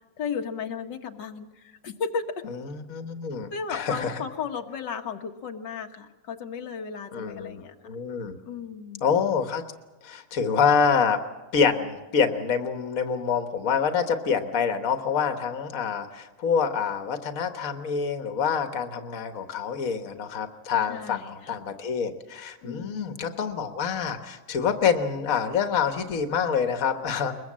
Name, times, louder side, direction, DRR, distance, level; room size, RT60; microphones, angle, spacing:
voice 1, 0.2-2.2 3.5-7.7 8.5-9.2 20.9-21.6 22.6-23.3, left 6 dB, 90° left, 4 dB, 1.9 m, -35 dB
voice 2, 2.5-4.2 7.1-8.4 9.0-9.6 10.0-11.2 11.5-27.4, left 6 dB, 55° left, 7 dB, 1.7 m, -26 dB
22.0 x 22.0 x 7.5 m, 1.1 s
omnidirectional pair, 1.9 m